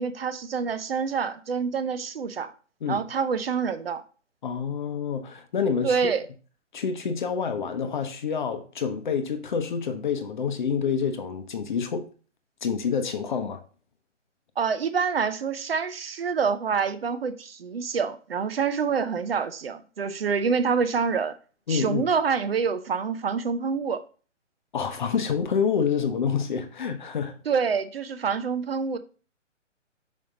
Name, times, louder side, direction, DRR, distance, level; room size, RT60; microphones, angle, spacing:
voice 1, 0.0-2.5 2.9-4.0 5.8-6.3 14.6-21.4 21.7-24.0 27.5-29.0, right 6 dB, 50° right, 0.7 m, -26 dB
voice 2, 4.4-6.1 6.7-12.1 12.6-13.6 21.7-22.0 24.7-27.4, left 6 dB, 40° left, 0.9 m, -27 dB
5.6 x 5.2 x 3.7 m
figure-of-eight pair, 145°, 37 cm